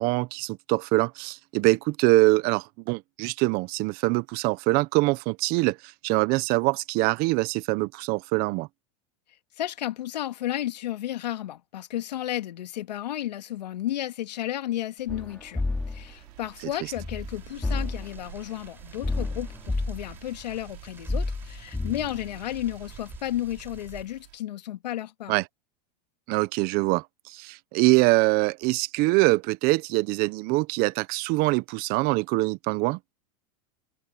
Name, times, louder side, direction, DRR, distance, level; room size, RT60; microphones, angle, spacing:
voice 1, 0.0-8.7 25.3-25.4 26.3-33.0, right 23 dB, 50° right, 1.0 m, -24 dB
voice 2, 9.6-25.4, left 13 dB, 85° left, 2.4 m, -33 dB
sound 1, 15.0-24.4, right 20 dB, 70° right, 6.4 m, -49 dB
sound 2, 15.1-16.1 17.0-18.2 19.0-20.2 21.1-22.3 23.1-23.2, left 2 dB, 10° left, 4.6 m, -30 dB
sound 3, 17.3-24.0, right 3 dB, 10° right, 7.8 m, -51 dB
supercardioid pair, 125°, 21 cm